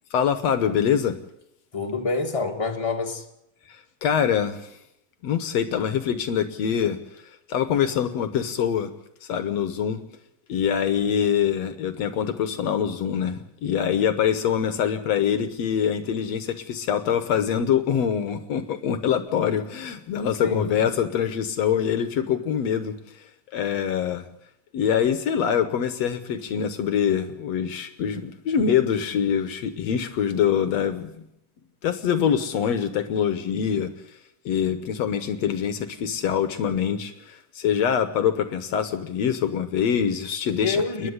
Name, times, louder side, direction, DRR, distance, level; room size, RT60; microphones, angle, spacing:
voice 1, 0.1-1.2 3.7-4.8 5.2-7.0 7.5-8.9 9.2-10.0 10.5-22.9 23.5-24.2 24.7-31.1 31.8-33.9 34.5-41.1, left 8 dB, 65° left, 2.0 m, -24 dB
voice 2, 1.7-3.2 20.4-20.8 40.6-41.1, left 4 dB, 10° left, 1.7 m, -27 dB
29.0 x 10.5 x 9.6 m
omnidirectional pair, 3.7 m